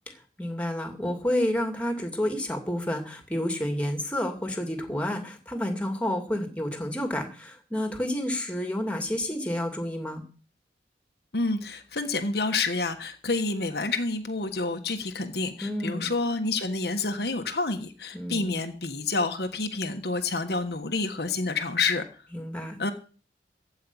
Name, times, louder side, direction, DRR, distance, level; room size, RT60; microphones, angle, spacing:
voice 1, 0.4-10.2 15.6-16.1 18.1-18.6 22.3-22.8, left 1 dB, 10° left, 5 dB, 2.5 m, -30 dB
voice 2, 11.3-22.0 22.8-22.9, left 3 dB, 60° left, 6 dB, 1.4 m, -28 dB
15.0 x 5.6 x 9.9 m, 0.37 s
head